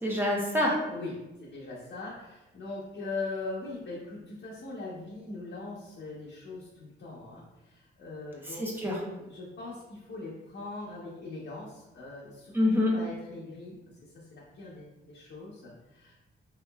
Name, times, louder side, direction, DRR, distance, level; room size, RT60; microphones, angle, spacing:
voice 1, 0.0-0.8 8.5-9.0 12.5-12.9, left 1 dB, 10° right, -4 dB, 0.8 m, -26 dB
voice 2, 0.9-8.7 9.2-13.8 14.0-16.1, left 3 dB, 60° left, -6 dB, 0.8 m, -41 dB
3.5 x 2.9 x 2.3 m, 1.0 s
cardioid pair, 85°, 21 cm